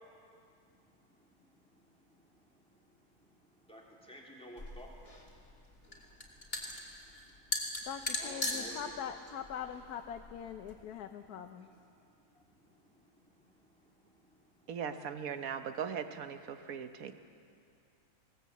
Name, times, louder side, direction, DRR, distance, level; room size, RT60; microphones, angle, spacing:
voice 1, 0.2-7.9 8.2-8.9 10.9-11.0 11.3-14.7, right 1 dB, 5° left, -3 dB, 3.3 m, -57 dB
sound 1, 4.6-10.7, left 1 dB, 30° left, 2.9 m, -40 dB
voice 2, 7.8-11.7, left 8 dB, 75° left, 6 dB, 1.3 m, -42 dB
voice 3, 14.7-17.2, right 7 dB, 65° right, 9 dB, 1.4 m, -39 dB
21.5 x 18.5 x 8.5 m, 2.5 s
omnidirectional pair, 1.7 m